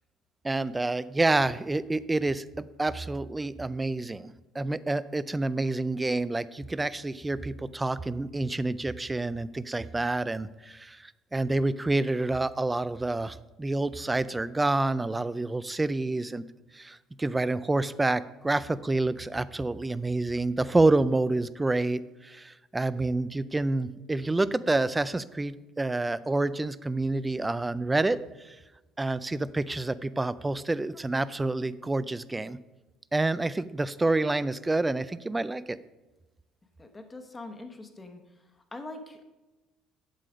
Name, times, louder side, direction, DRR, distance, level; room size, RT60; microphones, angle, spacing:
voice 1, 0.4-16.4 16.7-28.2 28.4-28.6 29.0-32.6 33.1-35.8, right 2 dB, 10° right, 16 dB, 0.3 m, -28 dB
voice 2, 36.8-38.2 38.5-39.2, left 2 dB, 15° left, 6 dB, 1.0 m, -43 dB
8.3 x 7.7 x 5.0 m, 1.1 s
cardioid pair, 140°, 0 cm